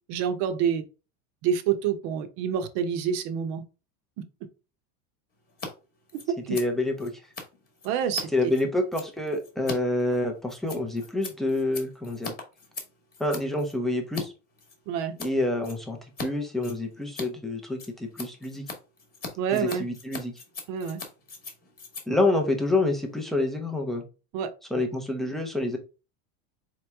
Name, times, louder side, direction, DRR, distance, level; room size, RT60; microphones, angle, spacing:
voice 1, 0.1-0.8 1.4-3.6 6.4-6.6 7.8-8.3 14.9-15.1 19.4-19.8 20.7-21.0 24.3-24.5, right 8 dB, 55° right, 0.8 m, -27 dB
Scissors, 5.5-5.7 6.0-14.3 14.6-15.3 15.6-16.3 16.5-23.3, left 4 dB, 20° left, 1.1 m, -41 dB
voice 2, 6.5-7.1 8.3-12.3 13.2-14.3 15.2-18.7 19.5-20.3 22.1-24.0 24.7-25.8, left 2 dB, ahead, 0.4 m, -27 dB
4.3 x 3.1 x 3.4 m
supercardioid pair, 145°, 44 cm